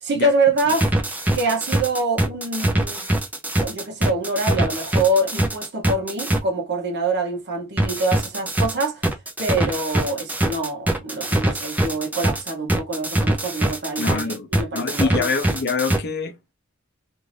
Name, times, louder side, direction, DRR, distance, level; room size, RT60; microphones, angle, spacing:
voice 1, 0.0-0.9 1.3-3.1 3.6-9.1 9.4-15.3, right 2 dB, 55° right, 0.9 m, -25 dB
sound 1, 0.6-6.4 7.8-16.0, right 1 dB, 10° right, 0.5 m, -22 dB
voice 2, 14.0-14.5 14.7-16.3, left 4 dB, 50° left, 0.7 m, -25 dB
2.7 x 2.5 x 3.2 m
head